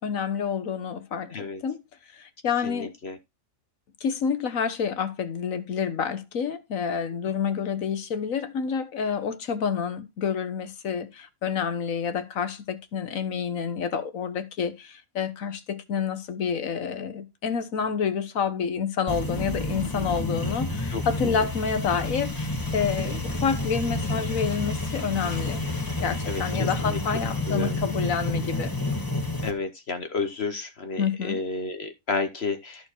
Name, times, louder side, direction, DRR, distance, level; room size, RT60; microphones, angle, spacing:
voice 1, 0.0-1.8 2.1-2.9 4.0-25.6 26.0-28.7 31.0-31.4, left 6 dB, 70° left, 1.5 m, -28 dB
voice 2, 1.3-1.6 2.6-3.2 20.9-21.4 23.0-23.2 26.3-27.0 27.5-27.8 29.4-32.9, left 4 dB, 50° left, 1.2 m, -32 dB
sound 1, 19.1-29.5, left 2 dB, 15° left, 1.8 m, -29 dB
13.5 x 4.6 x 4.4 m
omnidirectional pair, 1.5 m